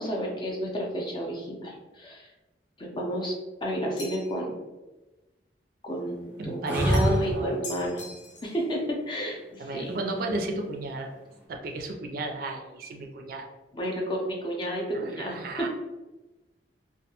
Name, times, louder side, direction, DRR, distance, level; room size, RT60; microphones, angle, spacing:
voice 1, 0.0-2.3 2.8-3.3 3.6-4.5 5.8-8.0 8.4-9.9 13.7-15.7, equal, 25° left, -1 dB, 0.5 m, -31 dB
sound 1, 4.0-4.5 6.9-7.3 7.6-8.6, left 2 dB, 85° left, 0.6 m, -42 dB
voice 2, 6.4-7.5 9.6-11.1 11.5-13.5 14.9-15.7, right 2 dB, 55° right, 3 dB, 0.3 m, -34 dB
sound 2, 6.7-7.6 10.2-10.8, right 1 dB, 10° right, 0.7 m, -26 dB
2.2 x 2.1 x 2.8 m, 1.1 s
head